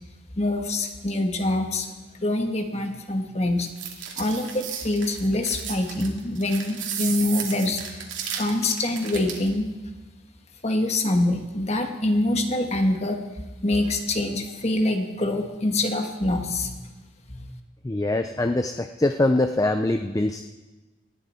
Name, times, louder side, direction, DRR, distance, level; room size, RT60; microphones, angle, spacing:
voice 1, 0.4-1.9 2.2-3.7 4.2-8.1 8.4-9.7 10.6-13.2 13.6-16.8 17.3-17.5, left 1 dB, 30° left, 4 dB, 1.5 m, -25 dB
sound 1, 3.6-9.5, right 8 dB, 65° right, 2.6 m, -34 dB
voice 2, 17.8-20.4, left 2 dB, 15° left, 7 dB, 0.4 m, -23 dB
19.5 x 14.5 x 4.4 m, 1.2 s
head